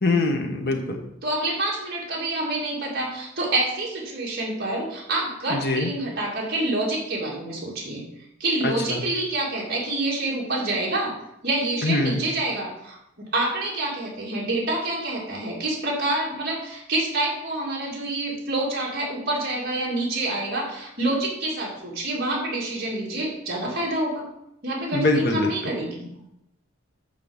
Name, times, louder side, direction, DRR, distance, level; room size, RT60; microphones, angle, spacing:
voice 1, 0.0-1.0 5.5-5.9 8.6-9.0 11.8-12.2 24.9-25.5, left 2 dB, 50° left, 3 dB, 1.4 m, -23 dB
voice 2, 1.2-8.0 8.4-11.1 11.4-13.0 13.3-24.3 24.6-26.1, right 2 dB, 50° right, -4 dB, 2.4 m, -27 dB
8.2 x 4.8 x 7.1 m, 0.84 s
head